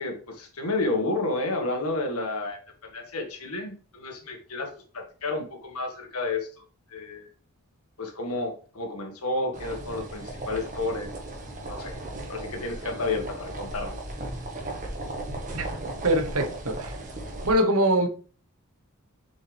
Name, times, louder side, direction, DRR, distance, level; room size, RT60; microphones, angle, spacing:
voice 1, 0.0-4.7 4.9-6.5 6.9-7.3 8.0-11.1 11.7-12.0 12.3-14.0, left 2 dB, 80° left, 1.8 m, -31 dB
sound 1, 9.5-17.5, right 1 dB, 35° right, 1.6 m, -36 dB
voice 2, 16.0-17.0 17.4-18.1, right 1 dB, 70° right, 1.2 m, -23 dB
7.2 x 5.6 x 3.5 m
head